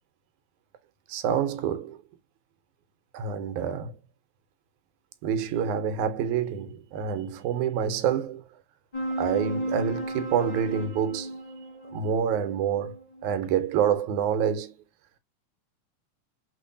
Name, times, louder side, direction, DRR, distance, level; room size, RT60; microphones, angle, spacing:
voice 1, 1.1-2.0 3.1-4.0 5.2-8.4 9.2-11.4 11.9-14.7, right 8 dB, 75° right, 2.1 m, -27 dB
sound 1, 8.9-13.8, right 1 dB, 30° left, 1.1 m, -35 dB
5.0 x 3.7 x 2.6 m
omnidirectional pair, 3.6 m